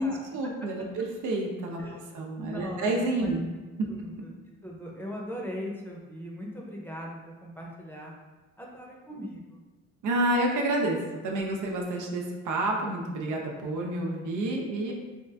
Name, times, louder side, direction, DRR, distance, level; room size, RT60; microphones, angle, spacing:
voice 1, 0.0-3.5 3.8-3.9 10.0-11.0 11.2-14.9, right 1 dB, 80° right, 0 dB, 0.7 m, -29 dB
voice 2, 2.4-3.4 3.9-4.3 4.6-8.1 8.6-9.6, equal, 5° left, -2 dB, 0.7 m, -39 dB
3.6 x 2.5 x 3.3 m, 1.2 s
cardioid pair, 90°, 30 cm